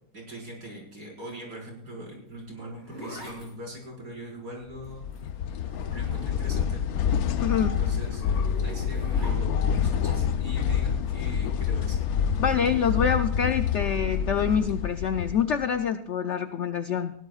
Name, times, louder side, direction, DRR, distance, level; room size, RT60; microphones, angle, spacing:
voice 1, 0.1-5.0 5.5-6.8 7.6-8.2 8.6-12.0, equal, 60° right, -4 dB, 5.6 m, -41 dB
Zipper (clothing), 2.3-6.8 7.1-9.8 11.4-11.7, equal, 15° left, 6.6 m, -45 dB
sound 1, 4.8-15.8, left 7 dB, 65° left, 1.1 m, -27 dB
voice 2, 7.4-7.8 12.4-17.1, left 7 dB, 80° left, 9 dB, 0.6 m, -26 dB
20.0 x 16.5 x 2.4 m, 0.77 s
omnidirectional pair, 1.9 m